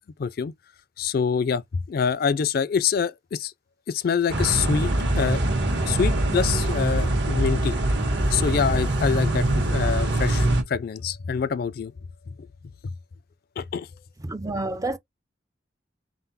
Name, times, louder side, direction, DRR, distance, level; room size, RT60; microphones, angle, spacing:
voice 1, 0.2-0.5 1.0-1.6 1.9-3.5 3.9-5.4 5.8-7.7 8.3-11.9 12.3-12.4 13.6-13.9, left 6 dB, 50° left, 0.4 m, -25 dB
sound 1, 4.3-10.6, right 1 dB, 65° right, 1.5 m, -23 dB
voice 2, 14.2-15.0, right 2 dB, 20° right, 0.4 m, -29 dB
3.9 x 3.7 x 2.8 m
head